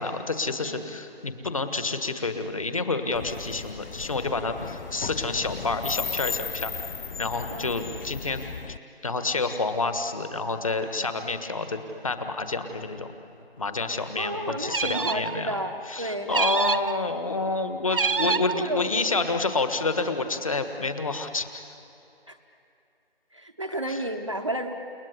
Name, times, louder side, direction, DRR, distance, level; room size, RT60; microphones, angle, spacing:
voice 1, 0.0-6.7 7.2-8.4 8.7-8.8 9.0-13.1 13.6-15.5 15.9-21.5 23.9-24.0, left 3 dB, 35° left, 8 dB, 1.5 m, -28 dB
sound 1, 3.1-8.8, left 5 dB, 65° left, 0.5 m, -36 dB
voice 2, 14.2-16.3 18.2-18.9 22.3-22.4 23.3-24.7, right 1 dB, 30° right, 3 dB, 0.9 m, -32 dB
sound 2, 14.7-15.3 16.3-17.0 17.9-18.6, right 5 dB, 60° right, 0.8 m, -26 dB
30.0 x 20.0 x 9.8 m, 2.7 s
figure-of-eight pair, 170°, 31 cm